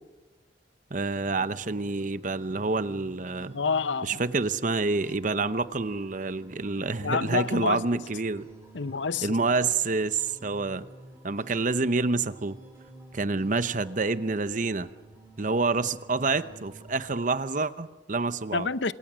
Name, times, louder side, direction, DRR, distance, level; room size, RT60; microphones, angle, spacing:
voice 1, 0.9-3.6 4.2-8.5 9.2-10.8 11.2-12.6 13.1-14.9 15.4-18.7, right 3 dB, 45° right, 0.8 m, -28 dB
sound 1, 1.1-17.1, right 2 dB, 15° right, 5.9 m, -51 dB
voice 2, 3.5-4.2 7.0-8.0 8.7-9.4 18.5-18.9, left 5 dB, 80° left, 0.8 m, -28 dB
28.0 x 26.5 x 6.3 m
head